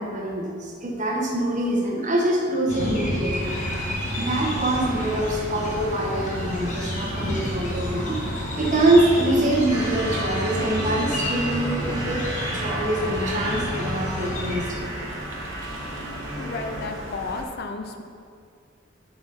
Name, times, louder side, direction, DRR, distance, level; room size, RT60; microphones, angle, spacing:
voice 1, 0.0-3.6 4.2-8.2 8.5-12.3 12.5-14.9, right 1 dB, 40° right, -1 dB, 1.1 m, -24 dB
sound 1, 2.7-14.6, left 1 dB, 40° left, 1.3 m, -30 dB
sound 2, 3.4-17.4, right 1 dB, 75° right, 0.9 m, -36 dB
sound 3, 9.7-16.8, right 1 dB, 20° right, 1.5 m, -33 dB
voice 2, 16.3-18.0, left 3 dB, 55° left, 5 dB, 0.5 m, -33 dB
7.9 x 4.1 x 5.4 m, 2.3 s
head